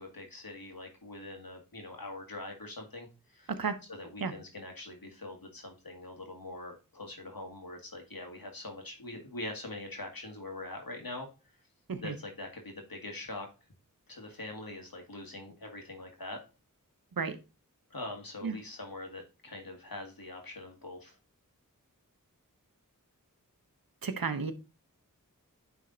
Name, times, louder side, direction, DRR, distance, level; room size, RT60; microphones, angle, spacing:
voice 1, 0.0-3.6 3.9-11.3 12.0-13.5 14.1-16.4 17.9-21.2, left 2 dB, 90° left, 1.7 m, -43 dB
voice 2, 24.0-24.5, right 5 dB, 85° right, 0.8 m, -32 dB
9.7 x 3.5 x 3.8 m
wide cardioid pair, 50°, 34 cm